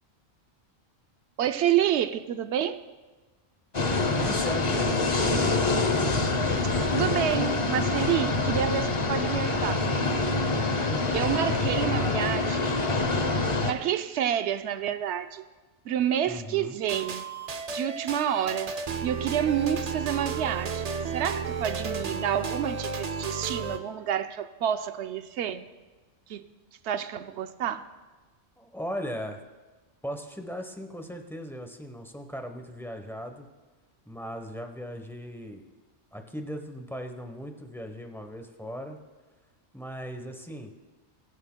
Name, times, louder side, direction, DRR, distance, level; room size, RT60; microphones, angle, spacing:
voice 1, 1.4-2.8 6.9-9.9 10.7-10.8 11.1-12.8 13.7-15.4 15.8-17.2 17.7-25.7 26.3-26.5 26.8-27.9, right 10 dB, 75° right, 10 dB, 0.9 m, -29 dB
sound 1, 3.7-13.7, left 3 dB, 35° left, 0.7 m, -26 dB
voice 2, 4.2-5.6 10.9-11.1 12.0-12.3 16.3-16.8 28.6-29.4 30.0-33.5 34.1-35.7 36.1-39.0 39.7-40.7, equal, ahead, 4 dB, 0.8 m, -38 dB
sound 2, 16.9-23.8, right 5 dB, 45° right, 0.5 m, -33 dB
22.0 x 9.7 x 2.2 m, 1.3 s
omnidirectional pair, 1.2 m